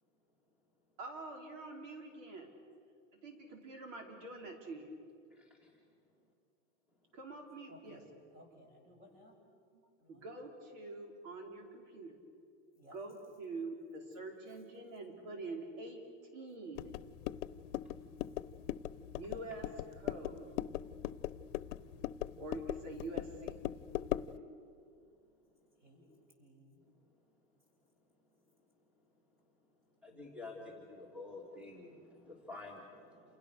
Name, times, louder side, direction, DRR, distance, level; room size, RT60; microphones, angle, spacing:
voice 1, 1.0-2.5 3.2-4.9 7.1-8.0 9.7-9.8 10.1-12.2 12.9-16.0 16.3-16.9 19.1-20.5 22.4-23.6, right 2 dB, 75° right, 2 dB, 5.1 m, -46 dB
voice 2, 7.7-8.0 8.3-9.4 10.0-10.3 12.8-13.0 25.8-26.0 26.4-26.8 30.1-30.3 30.5-30.8, equal, 25° right, 1 dB, 7.7 m, -60 dB
sound 1, 16.8-24.4, left 13 dB, 70° left, 0.9 m, -40 dB
voice 3, 30.0-32.0 32.3-32.8, left 3 dB, 5° right, 0 dB, 3.0 m, -48 dB
29.0 x 28.0 x 6.7 m, 2.4 s
supercardioid pair, 155°, 38 cm